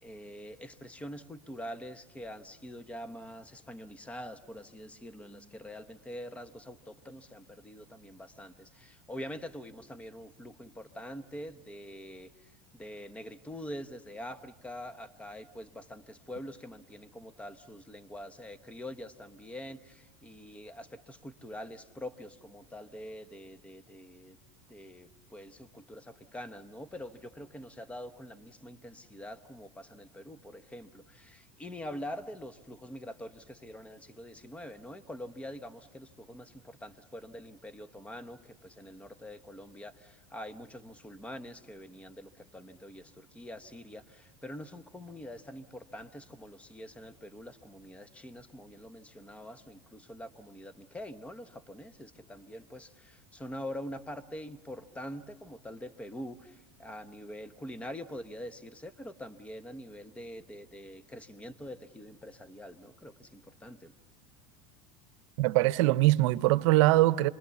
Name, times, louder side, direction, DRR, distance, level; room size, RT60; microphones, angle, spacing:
voice 1, 0.0-12.3 12.7-24.4 24.7-63.9, left 1 dB, 10° left, 0.9 m, -45 dB
voice 2, 65.4-67.3, right 17 dB, 75° right, 0.8 m, -22 dB
27.0 x 21.5 x 7.0 m
supercardioid pair, 130°, 16 cm